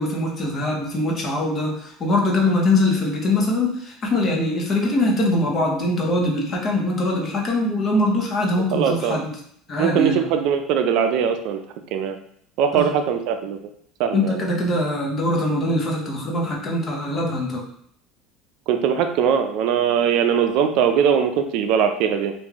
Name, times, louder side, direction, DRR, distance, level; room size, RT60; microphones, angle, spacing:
voice 1, 0.0-9.3 9.7-10.2 12.7-12.9 14.1-17.6, left 1 dB, 30° left, -1 dB, 0.9 m, -22 dB
voice 2, 8.7-9.2 9.8-11.6 11.9-12.2 12.6-13.6 14.0-14.5 18.7-22.3, right 7 dB, 65° right, 7 dB, 0.4 m, -21 dB
3.2 x 2.5 x 3.5 m, 0.66 s
supercardioid pair, 125°, 0 cm